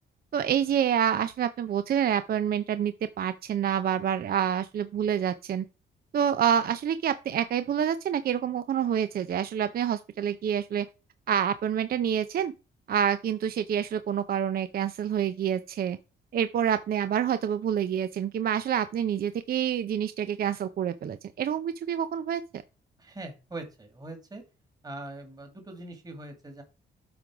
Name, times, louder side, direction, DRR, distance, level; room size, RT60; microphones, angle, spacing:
voice 1, 0.3-5.6 6.1-10.9 11.3-12.5 12.9-16.0 16.3-22.4, right 9 dB, 50° right, 0.5 m, -27 dB
voice 2, 23.0-24.4 24.8-26.6, right 2 dB, 20° right, 2.0 m, -42 dB
7.8 x 3.9 x 4.7 m
cardioid pair, 90°, 20 cm